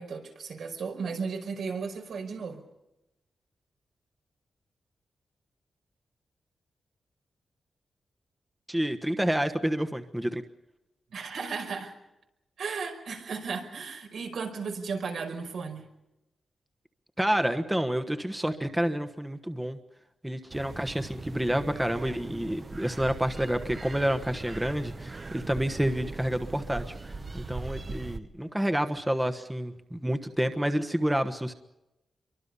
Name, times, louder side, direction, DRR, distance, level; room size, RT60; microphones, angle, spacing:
voice 1, 0.0-2.6 11.1-11.9 12.6-15.8, right 5 dB, 80° right, 3 dB, 5.2 m, -35 dB
voice 2, 8.7-10.4 17.2-19.8 20.2-31.5, equal, 5° right, 7 dB, 1.2 m, -29 dB
sound 1, 20.5-28.2, right 3 dB, 30° right, 1.1 m, -40 dB
27.5 x 24.0 x 5.5 m, 0.92 s
wide cardioid pair, 120°, 0 cm